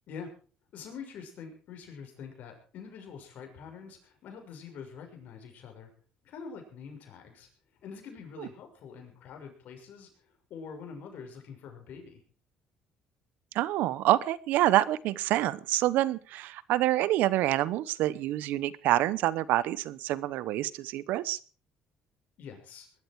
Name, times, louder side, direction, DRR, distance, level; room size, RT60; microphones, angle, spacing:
voice 1, 0.7-5.9 6.2-7.5 7.8-10.1 10.5-12.2 22.4-22.9, left 6 dB, 65° left, 3 dB, 6.2 m, -45 dB
voice 2, 13.5-21.4, right 15 dB, 80° right, 19 dB, 0.9 m, -27 dB
20.5 x 13.0 x 4.7 m, 0.38 s
cardioid pair, 95°, 3 cm